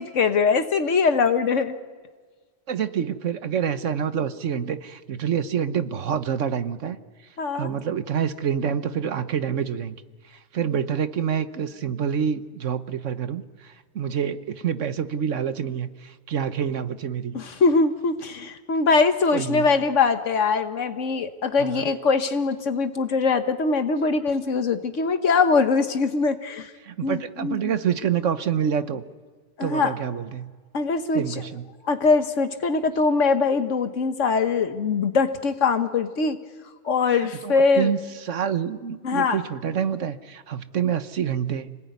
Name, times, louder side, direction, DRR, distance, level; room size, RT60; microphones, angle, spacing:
voice 1, 0.0-1.8 7.4-7.7 10.7-10.8 17.3-26.7 27.0-27.7 29.6-29.9 30.7-31.2 31.8-36.4 36.8-37.9 39.0-39.4, left 4 dB, 85° left, 8 dB, 1.6 m, -22 dB
voice 2, 2.7-7.0 7.5-10.0 10.3-17.4 19.3-19.7 21.6-21.8 26.8-29.0 29.6-30.5 31.1-31.6 37.4-38.0 38.3-41.8, right 8 dB, 85° right, 11 dB, 1.4 m, -27 dB
26.5 x 19.5 x 9.5 m, 1.4 s
omnidirectional pair, 1.2 m